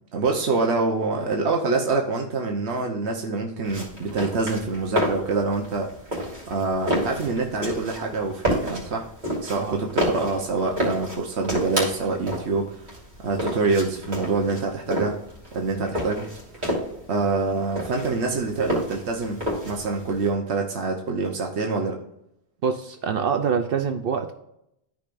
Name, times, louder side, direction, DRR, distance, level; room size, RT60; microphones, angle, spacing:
voice 1, 0.1-5.9 6.5-9.1 9.4-12.9 13.2-15.2 15.5-16.3 16.5-16.6 17.1-22.0, right 3 dB, 90° right, 1 dB, 1.2 m, -26 dB
sound 1, 3.6-20.3, equal, 45° right, 3.1 m, -30 dB
voice 2, 22.6-24.3, right 6 dB, 65° right, 7 dB, 0.8 m, -25 dB
13.5 x 5.1 x 2.6 m, 0.80 s
omnidirectional pair, 1.1 m